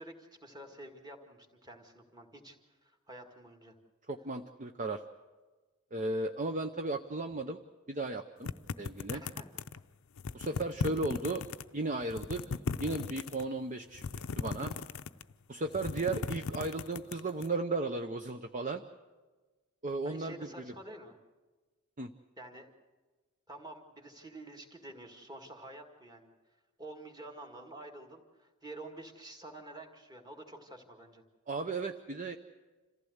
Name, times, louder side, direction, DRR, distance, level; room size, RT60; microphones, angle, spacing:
voice 1, 0.0-2.6 2.8-3.7 9.1-9.5 20.0-21.2 22.4-22.7 23.5-26.3 26.8-31.2, right 1 dB, 20° right, 3 dB, 1.9 m, -49 dB
voice 2, 4.1-5.0 5.9-7.6 7.9-8.5 8.8-9.2 10.3-11.4 11.7-12.4 12.8-14.0 14.4-14.7 15.5-18.8 19.8-20.7 22.0-22.1 31.5-32.4, right 2 dB, 35° right, 7 dB, 0.6 m, -35 dB
sound 1, 8.4-9.8 10.2-11.6 12.0-13.4 13.9-15.3 15.6-17.5, left 5 dB, 70° left, 0.6 m, -37 dB
27.0 x 15.0 x 8.0 m, 1.3 s
head